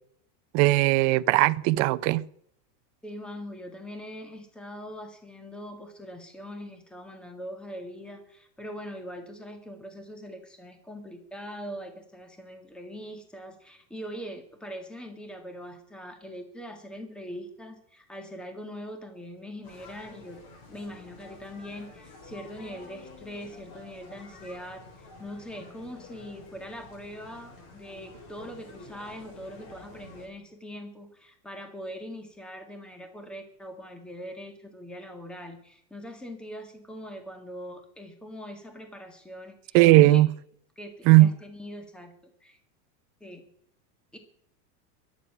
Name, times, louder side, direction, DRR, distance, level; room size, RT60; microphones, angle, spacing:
voice 1, 0.5-2.2 39.7-40.3 41.1-41.3, right 18 dB, 40° right, 0.7 m, -18 dB
voice 2, 3.0-20.4 20.7-40.2 40.8-42.6 43.2-43.5 44.1-44.2, equal, ahead, 1.7 m, -42 dB
sound 1, 19.6-30.3, left 3 dB, 55° left, 7.1 m, -49 dB
22.5 x 9.7 x 6.0 m
supercardioid pair, 155°, 48 cm